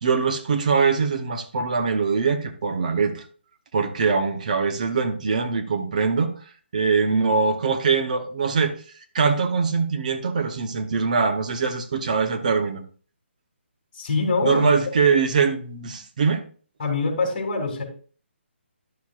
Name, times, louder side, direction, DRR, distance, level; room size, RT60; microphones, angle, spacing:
voice 1, 0.0-3.3 3.7-6.4 6.7-8.8 9.1-12.8 14.4-16.4, right 5 dB, 35° right, 8 dB, 0.9 m, -22 dB
voice 2, 13.9-14.9 16.8-17.8, left 3 dB, 35° left, 1 dB, 3.2 m, -24 dB
11.5 x 7.2 x 2.4 m, 0.42 s
hypercardioid pair, 170°, 7 cm